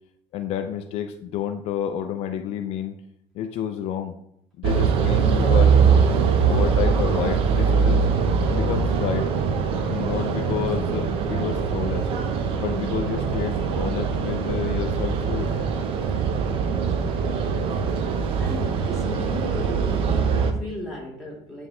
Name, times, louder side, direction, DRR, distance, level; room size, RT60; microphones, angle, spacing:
voice 1, 0.3-2.9 3.3-4.2 4.6-6.1 6.5-8.0 8.5-9.3 9.9-12.1 12.6-15.5, left 9 dB, 65° left, 7 dB, 0.5 m, -29 dB
sound 1, 4.6-20.5, right 6 dB, 55° right, 0.7 m, -22 dB
voice 2, 18.4-21.7, left 1 dB, ahead, -3 dB, 1.9 m, -35 dB
9.5 x 3.6 x 3.0 m, 0.73 s
cardioid pair, 140°, 11 cm